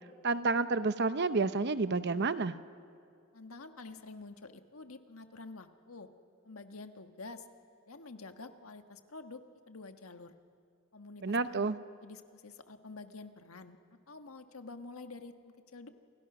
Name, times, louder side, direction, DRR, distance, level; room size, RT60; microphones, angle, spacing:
voice 1, 0.2-2.5 11.2-11.8, right 3 dB, 55° right, 12 dB, 0.9 m, -30 dB
voice 2, 3.3-6.1 6.4-7.5 7.9-9.4 9.7-10.4 10.9-11.7 12.0-15.9, left 3 dB, 85° left, 7 dB, 1.6 m, -48 dB
29.0 x 28.0 x 6.1 m, 2.3 s
head